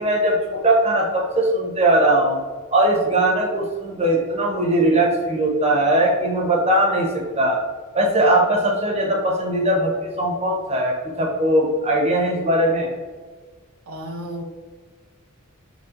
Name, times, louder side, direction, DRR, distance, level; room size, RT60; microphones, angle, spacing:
voice 1, 0.0-2.4 2.7-7.6 7.9-12.9, right 1 dB, 30° right, 0 dB, 0.8 m, -20 dB
voice 2, 13.9-14.4, equal, 70° right, 3 dB, 0.5 m, -32 dB
6.8 x 2.3 x 2.5 m, 1.4 s
head